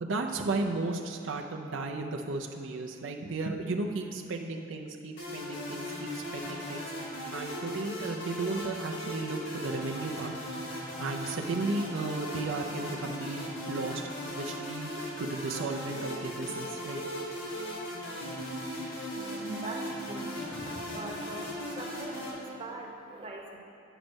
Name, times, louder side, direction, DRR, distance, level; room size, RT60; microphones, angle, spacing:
voice 1, 0.0-6.9 7.3-10.4 11.0-14.0 14.3-17.0, right 3 dB, 85° right, 2 dB, 0.6 m, -34 dB
sound 1, 5.2-22.3, equal, 85° left, 1.9 m, -38 dB
voice 2, 19.2-23.6, right 2 dB, 30° right, 0 dB, 0.9 m, -42 dB
8.9 x 5.3 x 6.2 m, 2.5 s
head